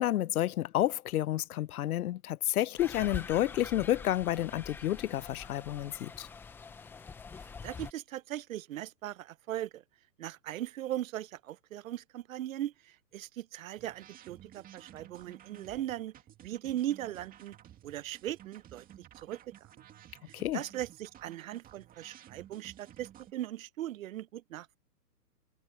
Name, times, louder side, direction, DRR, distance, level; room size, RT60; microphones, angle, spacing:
voice 1, 0.0-6.3 20.3-20.6, left 13 dB, 65° left, 0.8 m, -30 dB
sound 1, 2.8-7.9, left 5 dB, 5° left, 0.6 m, -44 dB
voice 2, 7.6-9.8 10.2-16.1 16.4-17.6 17.8-19.4 20.3-24.8, right 13 dB, 55° right, 0.8 m, -39 dB
sound 2, 13.8-23.3, right 11 dB, 20° right, 2.3 m, -54 dB
hypercardioid pair, 145°, 47 cm